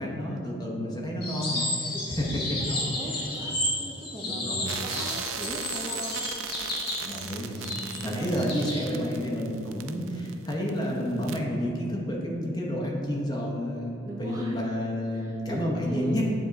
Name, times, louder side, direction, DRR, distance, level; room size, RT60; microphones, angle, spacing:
voice 1, 0.0-2.6 3.4-3.6 4.2-4.8 7.0-16.2, equal, 20° left, -2 dB, 0.9 m, -30 dB
sound 1, 1.2-8.8, left 1 dB, 50° left, 1.5 m, -32 dB
voice 2, 1.9-6.3 7.6-8.5 8.9-9.2 10.0-10.2 14.0-14.6 15.1-16.2, equal, 20° right, -3 dB, 0.5 m, -39 dB
sound 2, 4.7-10.9 11.2-11.4, right 8 dB, 75° right, 0.4 m, -38 dB
8.8 x 3.7 x 4.0 m, 2.7 s
head